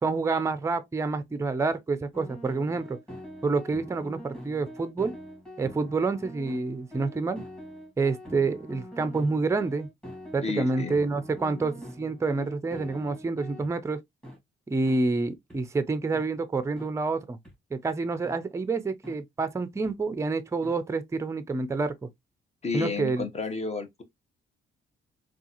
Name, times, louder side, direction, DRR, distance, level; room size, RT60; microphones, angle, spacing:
voice 1, 0.0-3.0 3.4-5.1 5.6-7.4 8.0-9.9 10.3-14.0 14.7-17.4 17.7-22.1 22.7-23.2, right 3 dB, 15° right, 0.4 m, -28 dB
sound 1, 2.1-13.7 14.2-14.4 14.9-15.0 15.5-15.6 16.1-16.3 16.8-16.9 17.4-17.5 18.2-18.4 19.0-19.2 19.8-19.9 20.6-20.8, equal, 5° left, 1.8 m, -44 dB
voice 2, 10.4-10.9 22.6-24.0, left 4 dB, 35° left, 0.9 m, -31 dB
3.6 x 2.3 x 2.8 m
cardioid pair, 90°, 20 cm